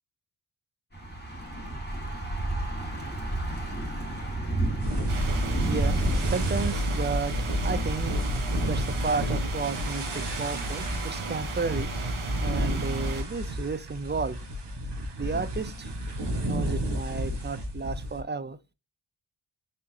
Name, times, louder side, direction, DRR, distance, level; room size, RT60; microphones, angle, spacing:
Thunder / Bicycle, 0.9-6.7, right 2 dB, 20° left, 2.2 m, -30 dB
sound 1, 4.8-18.2, equal, 55° right, 1.6 m, -32 dB
sound 2, 5.1-13.2, right 1 dB, 75° right, 1.5 m, -33 dB
voice 1, 5.7-6.0 6.3-11.9 12.4-14.4 15.2-15.9 16.4-18.6, right 4 dB, 20° right, 0.5 m, -33 dB
4.3 x 3.7 x 2.8 m
cardioid pair, 40°, 49 cm